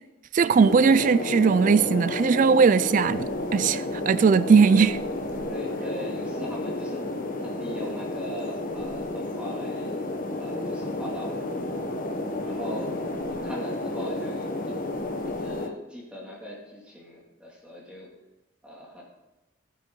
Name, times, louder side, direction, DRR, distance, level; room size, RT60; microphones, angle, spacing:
voice 1, 0.3-5.0, right 5 dB, 40° right, 0.3 m, -19 dB
sound 1, 0.6-15.7, left 2 dB, 45° left, 1.1 m, -31 dB
voice 2, 5.5-7.0 7.4-10.0 10.4-11.9 12.4-12.9 13.3-14.8 15.2-18.1 18.6-19.0, equal, 5° right, 2.4 m, -40 dB
15.5 x 9.5 x 3.8 m
head